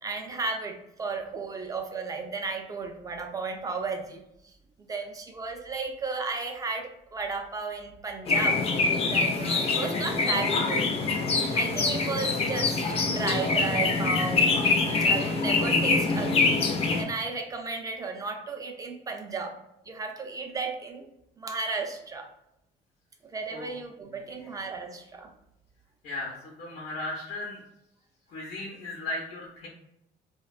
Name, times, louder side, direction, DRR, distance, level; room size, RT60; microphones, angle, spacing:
voice 1, 0.0-4.2 4.8-8.7 9.1-10.9 11.5-14.5 14.8-16.6 17.0-19.6 19.9-21.1 21.4-22.3 23.3-25.3, right 4 dB, 20° right, 3 dB, 0.4 m, -34 dB
sound 1, 8.3-17.0, left 3 dB, 35° left, 0.4 m, -25 dB
voice 2, 26.0-27.6 28.3-29.7, left 2 dB, 80° left, -3 dB, 0.6 m, -36 dB
2.5 x 2.2 x 2.3 m, 0.83 s
cardioid pair, 110°, 17 cm